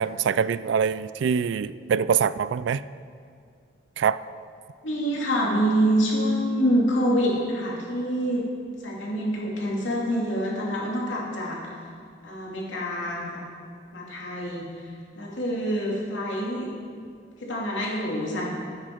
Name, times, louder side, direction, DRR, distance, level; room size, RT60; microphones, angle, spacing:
voice 1, 0.0-2.8 4.0-4.2, right 7 dB, 70° right, 16 dB, 0.3 m, -24 dB
voice 2, 4.8-8.4 8.8-11.6 12.2-13.4 13.9-14.6 15.1-16.7 17.4-18.6, equal, 80° left, -3 dB, 2.6 m, -26 dB
12.5 x 9.7 x 4.6 m, 2.2 s
head